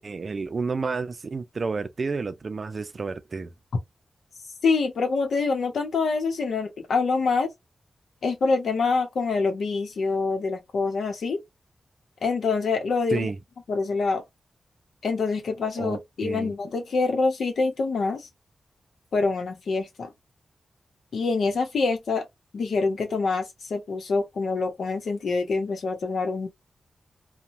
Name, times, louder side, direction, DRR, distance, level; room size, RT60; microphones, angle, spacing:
voice 1, 0.0-3.5 13.1-13.4 15.8-16.5, right 4 dB, 55° right, 0.4 m, -30 dB
voice 2, 4.6-7.5 8.2-11.4 12.2-13.3 13.7-14.2 15.0-18.3 19.1-20.1 21.1-22.2 22.5-26.5, left 4 dB, 80° left, 0.8 m, -25 dB
2.8 x 2.2 x 2.5 m
cardioid pair, 50°, 0 cm